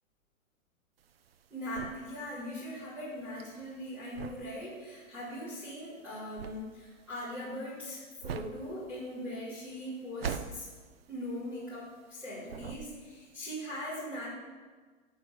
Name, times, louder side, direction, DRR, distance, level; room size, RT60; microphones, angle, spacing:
sound 1, 1.0-12.2 12.5-13.3, right 7 dB, 50° right, 0.6 m, -43 dB
voice 1, 1.5-10.7 11.1-14.3, left 1 dB, 5° right, -12 dB, 3.0 m, -40 dB
11.0 x 6.1 x 7.4 m, 1.4 s
hypercardioid pair, 175°, 40 cm